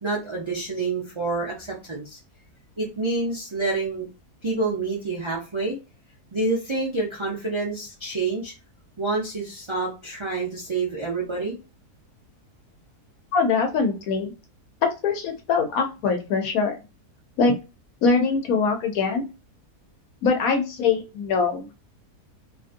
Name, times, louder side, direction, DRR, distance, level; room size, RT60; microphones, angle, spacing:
voice 1, 0.0-2.2 2.8-4.1 4.4-5.8 6.3-8.5 9.0-11.6, right 3 dB, 45° right, -4 dB, 0.3 m, -28 dB
voice 2, 13.3-14.3 14.8-16.8 17.4-17.5 18.0-19.2 20.2-21.7, left 4 dB, 70° left, 5 dB, 1.1 m, -23 dB
2.8 x 2.5 x 2.5 m, 0.29 s
omnidirectional pair, 1.7 m